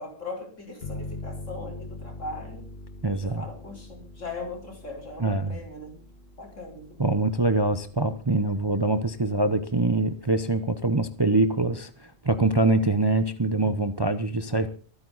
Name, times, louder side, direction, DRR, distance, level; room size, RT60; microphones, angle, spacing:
voice 1, 0.0-2.7 3.2-6.0 6.4-7.0, left 2 dB, 65° left, 2 dB, 4.6 m, -39 dB
sound 1, 0.8-10.1, left 2 dB, 50° left, 2.2 m, -43 dB
voice 2, 3.0-3.4 5.2-5.6 7.0-14.7, right 2 dB, 20° right, 10 dB, 0.8 m, -24 dB
23.5 x 9.4 x 4.1 m, 0.41 s
omnidirectional pair, 1.4 m